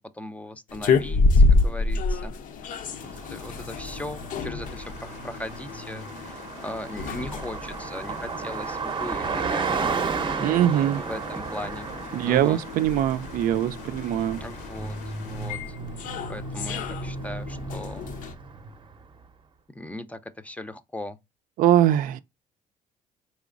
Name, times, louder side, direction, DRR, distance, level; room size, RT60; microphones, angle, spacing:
voice 1, 0.1-2.4 3.3-10.0 10.7-11.9 12.2-12.6 14.4-15.0 15.2-15.6 16.0-18.2 19.7-21.2, left 1 dB, 10° left, 0.5 m, -38 dB
sound 1, 0.7-18.3, left 3 dB, 65° left, 0.6 m, -29 dB
Car passing by, 3.0-19.0, right 4 dB, 35° right, 0.7 m, -34 dB
sound 2, 4.6-15.5, left 6 dB, 80° left, 1.0 m, -47 dB
voice 2, 10.4-11.0 12.1-14.4 21.6-22.2, right 11 dB, 70° right, 0.4 m, -22 dB
4.2 x 3.0 x 2.5 m
supercardioid pair, 80°, 15 cm